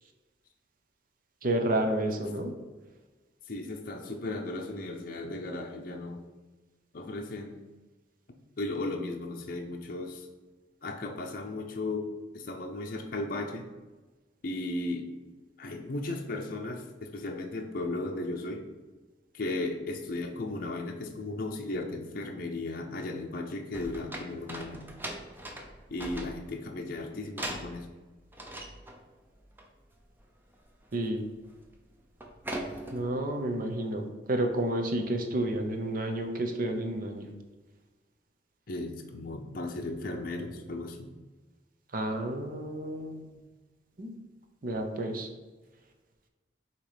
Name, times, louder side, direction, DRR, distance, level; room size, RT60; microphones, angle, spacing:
voice 1, 1.4-2.5 30.9-31.3 32.9-37.3 41.9-43.4 44.0-44.1 44.6-45.3, right 1 dB, 50° right, 5 dB, 0.8 m, -30 dB
voice 2, 3.5-6.2 6.9-7.6 8.6-10.3 10.8-12.1 12.3-13.7 14.4-15.1 15.6-18.6 19.3-24.9 25.9-27.9 38.7-41.1, left 2 dB, 50° left, 2 dB, 0.6 m, -36 dB
sound 1, 23.7-26.7 27.4-28.0 28.3-29.0 29.4-29.7 29.9-30.1 30.5-31.0 31.3-31.7 32.1-33.1, right 1 dB, 10° right, 0.6 m, -40 dB
6.9 x 3.0 x 5.0 m, 1.2 s
head